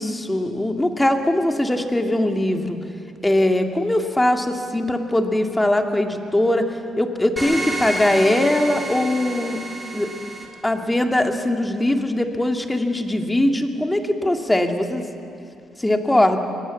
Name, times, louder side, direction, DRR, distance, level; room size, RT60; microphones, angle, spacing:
voice 1, 0.0-2.8 3.2-9.6 9.9-10.1 10.6-15.1 15.8-16.4, left 1 dB, 10° left, 5 dB, 2.1 m, -21 dB
sound 1, 7.4-10.4, right 2 dB, 10° right, 4.7 m, -29 dB
24.5 x 20.0 x 8.3 m, 2.6 s
cardioid pair, 90°, 0 cm